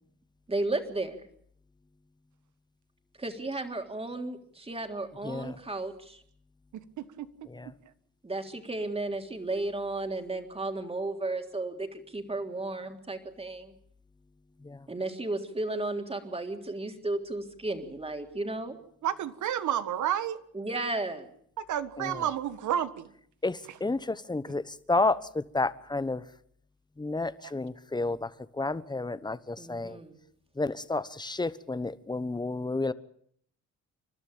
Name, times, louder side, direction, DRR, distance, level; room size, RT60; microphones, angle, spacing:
voice 1, 0.5-1.2 3.2-6.2 8.2-13.7 14.9-18.8 20.5-21.3 29.6-30.2, right 2 dB, 20° right, 5 dB, 3.5 m, -34 dB
voice 2, 5.2-5.5 7.5-7.7 14.6-14.8 22.0-22.3 23.4-24.6 24.9-26.2 27.0-28.3 28.6-30.0 30.6-32.9, left 3 dB, 15° left, 16 dB, 1.1 m, -31 dB
voice 3, 7.0-7.3 19.0-20.4 21.6-23.1 23.7-23.8 27.4-27.5, right 10 dB, 75° right, 13 dB, 1.7 m, -30 dB
29.5 x 12.5 x 8.8 m, 0.66 s
cardioid pair, 90°, 30 cm